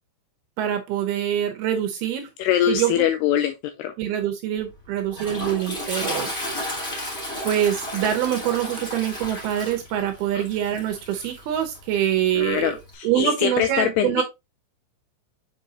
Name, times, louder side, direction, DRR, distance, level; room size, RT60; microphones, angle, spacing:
voice 1, 0.6-2.3 2.7-3.1 4.0-6.3 7.4-12.8 13.0-14.2, right 10 dB, 75° right, 2.4 m, -25 dB
voice 2, 2.4-3.9 10.3-10.4 12.4-14.2, left 10 dB, 90° left, 2.3 m, -23 dB
Toilet flush, 4.6-12.9, equal, 15° left, 2.3 m, -33 dB
7.1 x 5.3 x 2.8 m
omnidirectional pair, 5.2 m